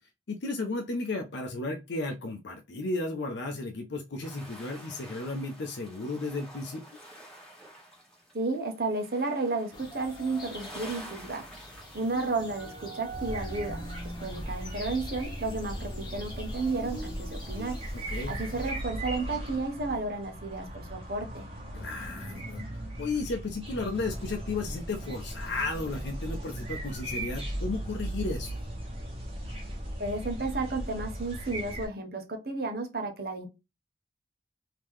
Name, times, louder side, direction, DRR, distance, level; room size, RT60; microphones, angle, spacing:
voice 1, 0.3-7.0 17.9-18.3 21.7-28.6, left 3 dB, 70° left, 0.5 m, -34 dB
sound 1, 4.2-12.9, right 1 dB, ahead, 1.4 m, -49 dB
voice 2, 8.3-11.5 11.9-13.8 14.2-17.8 18.3-21.5 30.0-33.5, right 3 dB, 55° right, 0.9 m, -32 dB
sound 2, 9.7-18.7, equal, 25° left, 0.9 m, -44 dB
sound 3, 13.1-31.9, right 1 dB, 30° right, 1.2 m, -38 dB
3.7 x 2.8 x 3.1 m
head